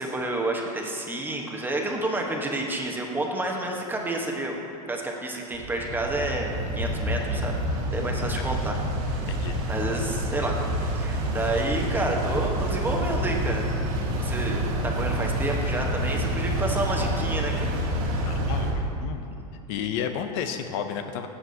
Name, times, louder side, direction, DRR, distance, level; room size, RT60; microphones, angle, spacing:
voice 1, 0.0-4.6 4.9-7.6 7.9-8.8 9.7-10.6 10.9-13.7 14.2-17.7 18.0-18.2 19.3-19.4, right 2 dB, 10° right, 0 dB, 1.1 m, -29 dB
sound 1, 5.5-18.7, equal, 65° right, 2.0 m, -28 dB
voice 2, 18.2-18.7 19.0-19.2 19.7-21.3, left 8 dB, 50° left, 6 dB, 0.6 m, -31 dB
14.0 x 7.5 x 2.8 m, 2.8 s
hypercardioid pair, 110°, 20 cm